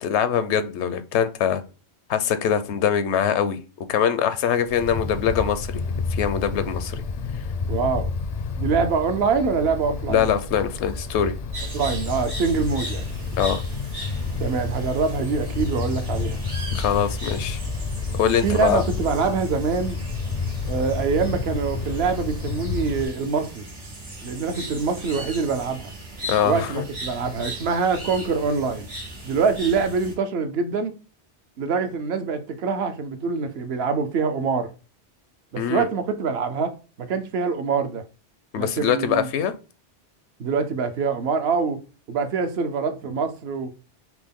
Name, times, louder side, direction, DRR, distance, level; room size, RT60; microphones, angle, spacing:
voice 1, 0.0-1.6 2.1-3.6 3.9-7.0 10.1-11.3 13.4-13.6 16.7-17.6 18.2-18.8 26.3-26.8 35.6-35.9 38.5-39.5, left 8 dB, 80° left, 0.9 m, -23 dB
Wind, 4.6-23.0, left 4 dB, 55° left, 0.4 m, -30 dB
voice 2, 7.7-8.1 8.6-10.3 11.7-13.1 14.4-16.4 18.4-20.0 20.6-23.6 24.2-25.9 26.4-28.9 29.2-30.9 31.6-34.7 35.5-36.7 37.0-38.0 38.5-39.3 40.4-41.8 42.1-43.7, right 5 dB, 65° right, 0.9 m, -24 dB
sound 1, 11.5-30.1, right 1 dB, 85° right, 2.1 m, -38 dB
5.9 x 2.2 x 3.6 m
omnidirectional pair, 1.2 m